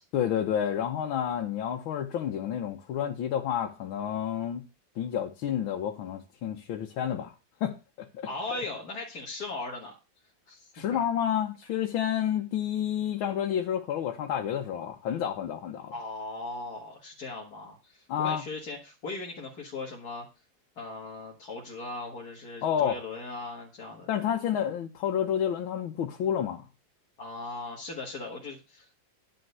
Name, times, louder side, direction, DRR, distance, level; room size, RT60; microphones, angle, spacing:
voice 1, 0.1-4.6 5.0-7.3 7.6-8.3 10.7-15.9 18.1-18.4 22.6-23.0 24.1-26.6, left 9 dB, 90° left, 1.7 m, -30 dB
voice 2, 8.2-10.0 10.5-11.0 15.9-20.3 20.8-24.1 27.2-28.9, left 2 dB, 55° left, 2.2 m, -38 dB
10.5 x 4.4 x 7.9 m
omnidirectional pair, 2.1 m